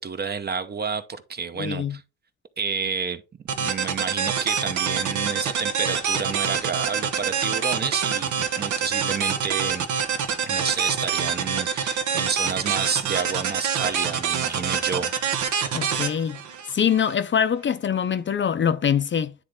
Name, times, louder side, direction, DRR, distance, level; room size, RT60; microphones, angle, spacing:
voice 1, 0.0-2.0 2.6-3.2 3.6-9.9 10.5-15.1, right 5 dB, 35° right, 0.8 m, -30 dB
voice 2, 1.6-2.0 15.7-16.4 16.7-19.3, left 8 dB, 40° left, 0.6 m, -24 dB
sound 1, 3.5-17.1, right 7 dB, 75° right, 1.1 m, -26 dB
9.8 x 3.3 x 3.7 m
cardioid pair, 90°, 30 cm